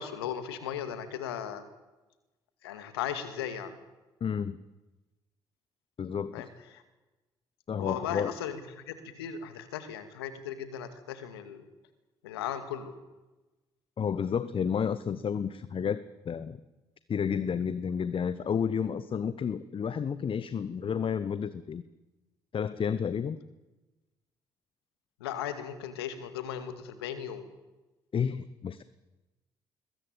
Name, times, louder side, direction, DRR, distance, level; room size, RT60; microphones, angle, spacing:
voice 1, 0.0-1.6 2.6-3.8 6.3-6.8 7.8-11.6 12.2-12.9 25.2-27.5, left 9 dB, 80° left, 10 dB, 2.2 m, -37 dB
voice 2, 4.2-4.6 6.0-6.5 7.7-8.3 14.0-16.6 17.1-21.8 22.5-23.4 28.1-28.8, left 7 dB, 45° left, 15 dB, 1.1 m, -31 dB
21.5 x 21.0 x 9.0 m, 1.1 s
hypercardioid pair, 45°, 13 cm